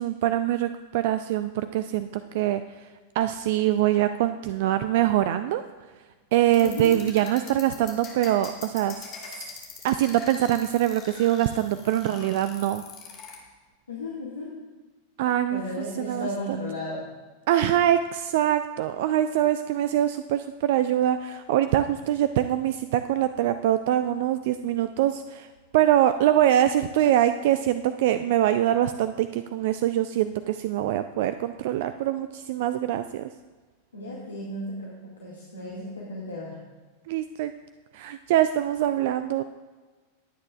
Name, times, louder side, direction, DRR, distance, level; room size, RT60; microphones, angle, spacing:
voice 1, 0.0-2.9 3.1-5.6 6.3-9.3 9.8-12.8 15.2-16.6 17.5-25.5 25.7-33.3 37.1-37.5 37.9-39.4, right 12 dB, 50° right, 11 dB, 0.4 m, -24 dB
sound 1, 6.5-13.4, left 6 dB, 35° left, 2.2 m, -43 dB
voice 2, 6.6-6.9 13.9-14.5 15.5-17.1 33.9-36.5, left 1 dB, 75° left, -5 dB, 2.1 m, -34 dB
21.0 x 8.7 x 2.4 m, 1.3 s
figure-of-eight pair, 90°, 0 cm